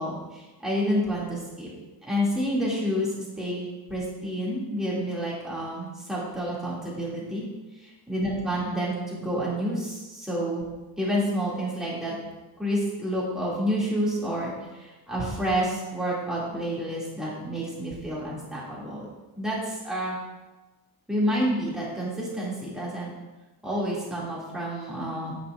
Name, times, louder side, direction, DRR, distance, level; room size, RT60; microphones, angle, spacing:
voice 1, 0.0-1.7 2.0-3.1 3.4-7.4 7.8-10.6 11.0-12.2 12.6-19.0 19.4-20.2 21.1-23.1 23.6-25.4, equal, ahead, -7 dB, 2.1 m, -29 dB
9.9 x 7.1 x 2.4 m, 1.2 s
wide cardioid pair, 165°, 39 cm